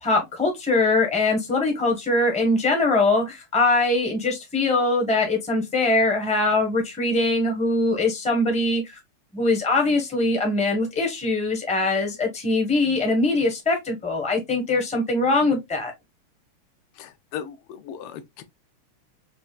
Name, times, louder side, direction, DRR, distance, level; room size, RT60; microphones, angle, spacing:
voice 1, 0.0-8.8 9.3-15.9, left 2 dB, 10° left, 0.4 m, -22 dB
voice 2, 17.0-18.4, left 8 dB, 80° left, 1.5 m, -37 dB
5.4 x 2.5 x 2.3 m
omnidirectional pair, 2.4 m